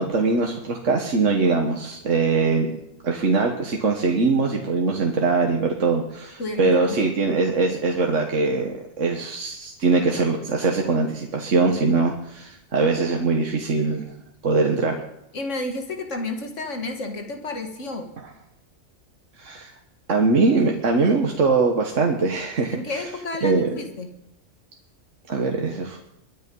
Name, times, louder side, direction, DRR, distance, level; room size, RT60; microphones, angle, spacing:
voice 1, 0.0-2.7 3.0-14.0 14.4-15.0 19.4-19.7 20.1-23.1 23.4-23.7 25.3-26.0, right 3 dB, 70° right, 1 dB, 1.8 m, -22 dB
voice 2, 6.4-7.1 15.3-18.1 22.7-24.1, left 2 dB, 65° left, 5 dB, 2.2 m, -31 dB
22.5 x 9.5 x 5.4 m, 0.83 s
omnidirectional pair, 1.3 m